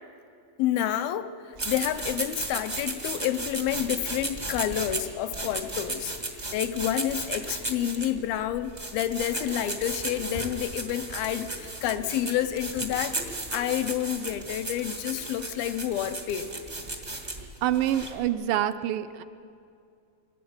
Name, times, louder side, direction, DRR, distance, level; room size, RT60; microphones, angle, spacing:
voice 1, 0.6-6.1 6.5-13.2 13.5-16.5, left 11 dB, 80° left, 10 dB, 2.5 m, -29 dB
sound 1, 1.6-18.3, right 2 dB, 40° right, 0.6 m, -35 dB
voice 2, 17.6-19.2, right 12 dB, 80° right, 11 dB, 2.0 m, -26 dB
24.5 x 13.0 x 8.7 m, 2.5 s
omnidirectional pair, 4.3 m